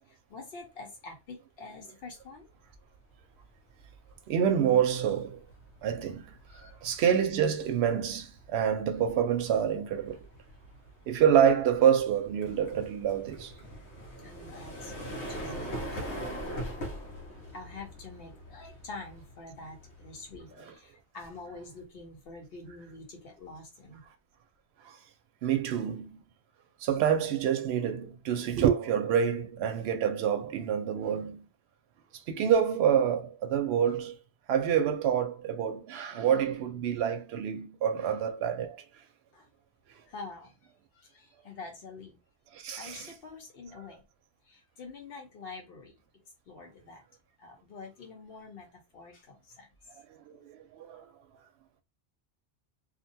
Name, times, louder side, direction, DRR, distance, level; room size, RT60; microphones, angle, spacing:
voice 1, 0.1-2.5 6.5-6.7 14.2-15.8 17.5-24.0 39.3-39.5 40.1-42.2 42.8-44.0 44.5-45.9 46.5-47.0 47.4-48.7 48.9-49.7, left 3 dB, 60° left, 1.1 m, -46 dB
sound 1, 3.1-3.4 3.8-20.5, equal, 85° left, 1.1 m, -43 dB
voice 2, 4.3-5.4 5.8-10.3 11.1-13.6 24.8-25.0 25.4-26.2 26.8-31.5 32.1-34.2 34.5-38.8 42.5-43.1 50.1-51.1, right 8 dB, 70° right, 0.8 m, -27 dB
2.6 x 2.2 x 2.6 m
omnidirectional pair, 1.1 m